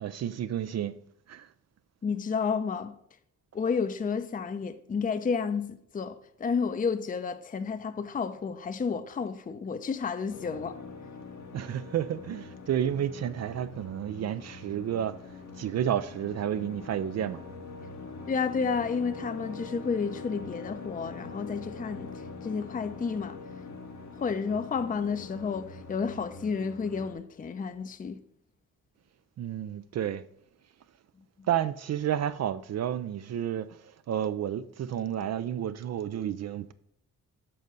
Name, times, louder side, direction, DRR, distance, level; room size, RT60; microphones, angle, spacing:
voice 1, 0.0-1.0 1.3-1.5 11.5-15.1 15.6-17.4 29.4-30.2 31.5-33.7 34.1-36.7, right 10 dB, 60° right, 0.4 m, -31 dB
voice 2, 2.0-2.9 3.5-10.7 18.3-22.1 22.4-23.4 24.2-28.2 31.4-31.5, left 5 dB, 25° left, 0.5 m, -31 dB
sound 1, 10.3-27.1, left 4 dB, 65° left, 1.0 m, -43 dB
7.7 x 3.9 x 6.6 m
cardioid pair, 100°, 31 cm